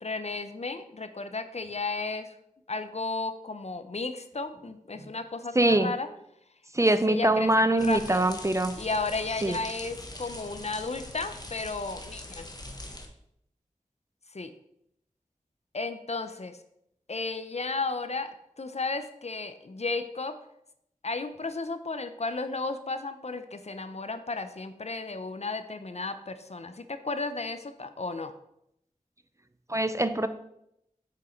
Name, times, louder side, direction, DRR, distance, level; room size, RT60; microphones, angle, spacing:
voice 1, 0.0-2.3 2.7-6.1 6.8-8.3 8.8-12.5 14.3-14.5 15.7-16.6 17.1-18.3 18.6-20.3 21.0-28.3, left 3 dB, 50° left, 9 dB, 0.7 m, -34 dB
voice 2, 5.6-5.9 6.7-8.8 9.4-9.6 29.7-30.3, right 1 dB, 20° right, 10 dB, 0.5 m, -23 dB
sound 1, 7.8-13.1, left 1 dB, 30° left, 1.2 m, -43 dB
7.4 x 6.3 x 4.4 m, 0.77 s
wide cardioid pair, 70°, 14 cm